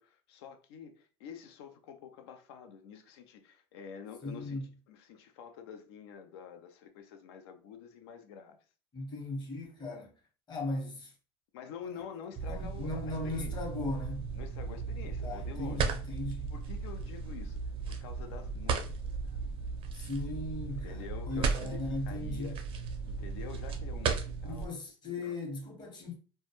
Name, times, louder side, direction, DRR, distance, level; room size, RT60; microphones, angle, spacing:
voice 1, 0.0-4.6 4.9-8.6 11.5-13.5 14.3-15.9 16.5-17.6 17.9-19.4 20.7-22.6 23.0-24.7 25.2-25.3, left 7 dB, 75° left, 0.5 m, -47 dB
voice 2, 4.2-4.7 8.9-10.1 10.5-11.1 12.5-14.3 15.2-16.5 19.9-22.6 24.4-26.2, left 2 dB, 30° left, 0.9 m, -38 dB
sound 1, 12.4-24.7, right 5 dB, 40° right, 0.5 m, -36 dB
2.2 x 2.1 x 2.9 m
supercardioid pair, 95°, 14 cm